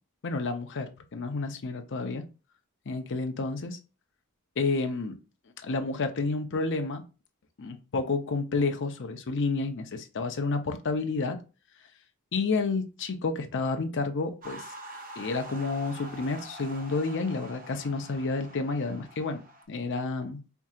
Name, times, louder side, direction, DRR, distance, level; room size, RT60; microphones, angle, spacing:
voice 1, 0.2-2.2 2.9-3.8 4.6-5.2 5.6-7.0 7.6-11.4 12.3-14.6 15.2-19.4 19.7-20.4, left 3 dB, 55° left, 0.6 m, -30 dB
sound 1, 14.4-19.6, right 1 dB, 40° right, 0.8 m, -45 dB
4.5 x 2.8 x 2.4 m
head